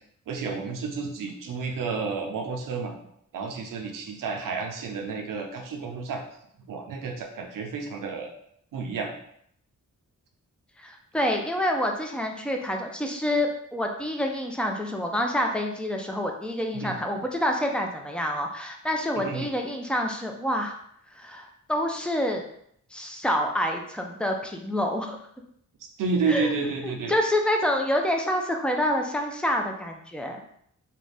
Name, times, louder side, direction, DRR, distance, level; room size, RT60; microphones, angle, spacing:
voice 1, 0.3-3.0 3.3-6.2 6.7-8.3 8.7-9.1 16.7-17.0 19.2-19.5 26.0-27.1, right 4 dB, 90° right, 3 dB, 0.5 m, -30 dB
voice 2, 10.8-20.7 21.2-22.4 22.9-25.2 26.3-26.5 26.8-30.4, left 1 dB, 5° left, 2 dB, 0.4 m, -27 dB
2.4 x 2.2 x 3.3 m, 0.69 s
cardioid pair, 65°, 32 cm